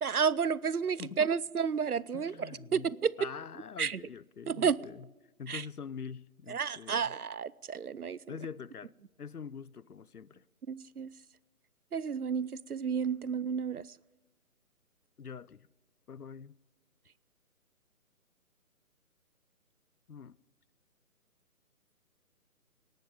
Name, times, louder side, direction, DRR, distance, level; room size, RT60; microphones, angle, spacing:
voice 1, 0.0-3.3 3.8-4.0 4.5-4.9 5.5-5.6 6.5-8.2 10.7-11.1 11.9-13.9, right 6 dB, 80° right, 0.7 m, -31 dB
voice 2, 2.1-2.9 3.2-5.1 5.4-7.1 8.3-8.9 9.2-10.4 15.2-15.7 16.1-16.6 20.1-20.4, left 6 dB, 85° left, 0.6 m, -44 dB
18.0 x 12.0 x 5.2 m
figure-of-eight pair, 145°, 44 cm